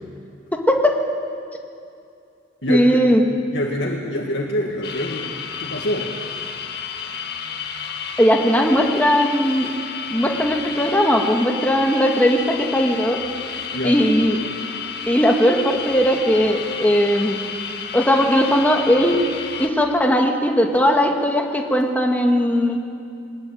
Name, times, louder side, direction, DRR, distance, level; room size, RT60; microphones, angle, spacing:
voice 1, 0.5-0.9 2.7-3.2 8.2-9.7 10.1-13.2 13.8-14.4 15.1-17.4 17.9-19.2 19.6-22.9, equal, 10° left, 1 dB, 2.0 m, -18 dB
voice 2, 2.6-3.0 3.5-5.3 5.6-6.1 13.7-14.0, left 1 dB, 85° left, -1 dB, 2.3 m, -25 dB
sound 1, 4.8-19.7, left 6 dB, 60° left, 2.0 m, -31 dB
22.5 x 20.5 x 9.2 m, 2.5 s
head